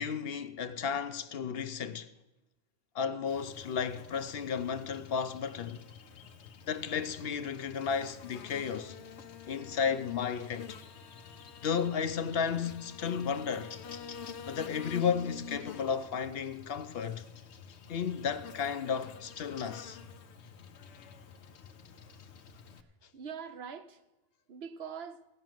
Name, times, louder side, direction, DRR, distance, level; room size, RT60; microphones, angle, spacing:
voice 1, 0.0-2.1 2.9-5.8 6.7-9.0 9.5-10.8 11.6-13.8 14.5-17.2 17.9-20.0, left 6 dB, 65° left, 0.9 m, -33 dB
Buzz, 3.3-22.8, left 6 dB, 90° left, 1.1 m, -48 dB
voice 2, 22.7-24.1 24.5-25.3, right 7 dB, 70° right, 1.0 m, -45 dB
16.0 x 6.1 x 9.1 m
omnidirectional pair, 1.1 m